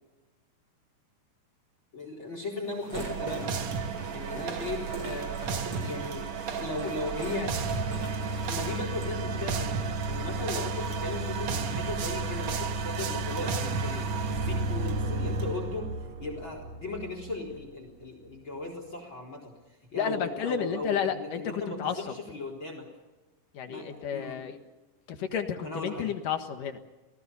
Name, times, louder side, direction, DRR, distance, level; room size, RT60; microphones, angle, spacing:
voice 1, 1.9-3.5 4.1-7.6 8.5-15.9 16.2-22.9 23.7-24.5 25.6-26.1, left 2 dB, 30° left, 3 dB, 4.4 m, -37 dB
sound 1, 2.6-9.1, right 1 dB, 30° right, 7.9 m, -42 dB
sound 2, 2.9-17.6, right 4 dB, 55° right, 2.2 m, -32 dB
voice 2, 4.3-4.7 20.0-22.0 23.5-24.6 25.1-26.8, left 8 dB, 60° left, 7 dB, 2.9 m, -32 dB
29.0 x 18.0 x 7.0 m, 1.1 s
omnidirectional pair, 4.6 m